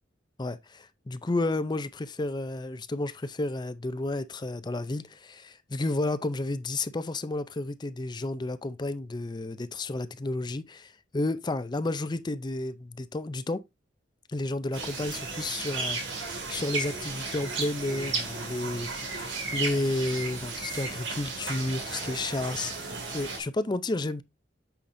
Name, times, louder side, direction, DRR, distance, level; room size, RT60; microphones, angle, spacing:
voice 1, 0.4-13.6 14.3-24.2, left 2 dB, 25° left, 0.5 m, -32 dB
sound 1, 14.7-23.4, right 3 dB, 85° right, 2.1 m, -34 dB
8.5 x 5.7 x 2.6 m
head